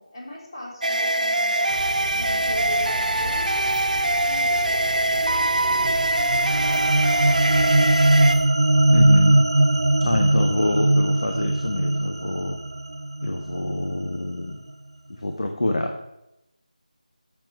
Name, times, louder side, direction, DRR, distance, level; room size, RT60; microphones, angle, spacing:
voice 1, 0.0-1.8 2.1-3.7 4.2-4.5 5.1-7.9, left 1 dB, 30° left, -3 dB, 3.3 m, -40 dB
sound 1, 0.8-8.4, right 2 dB, 70° right, 0.8 m, -23 dB
sound 2, 1.7-8.4, equal, ahead, 0.6 m, -35 dB
sound 3, 5.8-14.3, right 2 dB, 40° right, 0.4 m, -20 dB
voice 2, 8.9-9.4 10.0-12.6 13.2-14.6 15.1-16.2, left 1 dB, 50° left, 4 dB, 1.1 m, -26 dB
12.0 x 7.1 x 5.2 m, 0.89 s
figure-of-eight pair, 180°, 4 cm